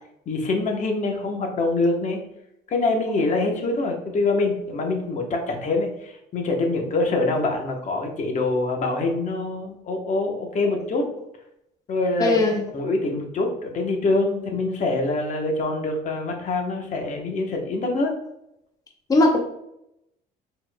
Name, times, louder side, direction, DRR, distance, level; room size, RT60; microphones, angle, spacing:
voice 1, 0.3-2.2 2.7-11.1 11.9-12.5 12.7-18.1, left 2 dB, 45° left, 2 dB, 1.0 m, -25 dB
voice 2, 12.2-12.6 19.1-19.4, left 2 dB, 20° left, 1 dB, 0.7 m, -18 dB
4.3 x 4.3 x 2.2 m, 0.80 s
cardioid pair, 110°, 17 cm